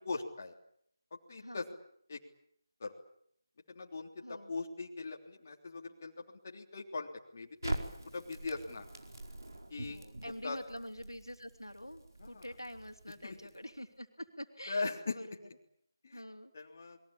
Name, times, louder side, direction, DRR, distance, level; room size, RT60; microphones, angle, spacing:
voice 1, 0.0-0.5 1.3-1.6 2.1-2.2 2.8-2.9 3.7-7.8 8.1-8.9 9.7-10.0 10.4-10.6 12.2-12.4 13.2-13.4 14.7-15.1 16.0-16.2 16.5-17.0, left 3 dB, 35° left, 1 dB, 3.2 m, -40 dB
voice 2, 4.2-4.5 9.9-15.5 16.1-16.5, equal, 85° left, 5 dB, 3.4 m, -46 dB
Crackle, 7.6-13.8, right 1 dB, 60° right, 4.7 m, -44 dB
29.5 x 22.0 x 8.7 m, 0.71 s
figure-of-eight pair, 160°, 2 cm